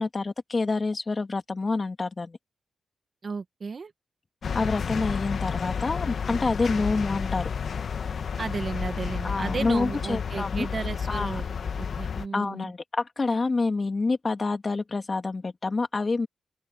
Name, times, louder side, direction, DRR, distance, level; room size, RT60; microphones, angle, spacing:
voice 1, 0.0-2.4 4.5-7.5 9.2-10.7 11.1-11.4 12.3-16.3, left 3 dB, 35° left, 2.8 m, -27 dB
voice 2, 3.2-3.9 8.4-11.5 11.8-12.7, right 4 dB, 45° right, 1.9 m, -34 dB
sound 1, 4.4-12.3, left 6 dB, 60° left, 1.5 m, -31 dB
open air
cardioid pair, 95°, 0 cm